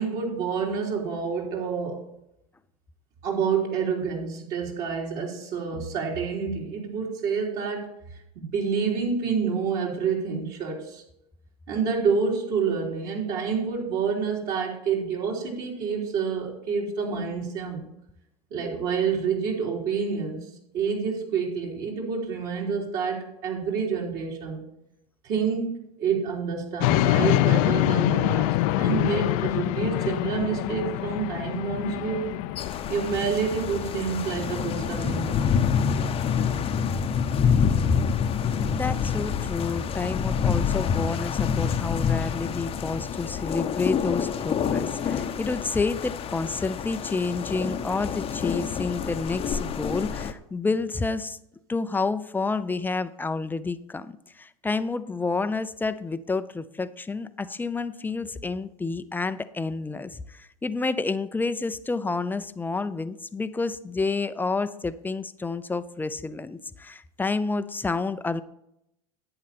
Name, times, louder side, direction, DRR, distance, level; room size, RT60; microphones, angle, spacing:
voice 1, 0.0-2.0 3.2-7.9 8.3-11.0 11.7-17.9 18.5-24.6 25.2-32.3 32.9-35.7, right 6 dB, 50° right, -1 dB, 3.8 m, -28 dB
sound 1, 26.8-39.8, left 15 dB, 55° left, 0.6 m, -27 dB
sound 2, 32.6-50.3, left 7 dB, 30° left, 0.8 m, -27 dB
voice 2, 38.7-51.4 51.7-68.4, left 3 dB, 10° left, 12 dB, 0.5 m, -29 dB
10.5 x 8.8 x 4.3 m, 0.79 s
hypercardioid pair, 100°, 20 cm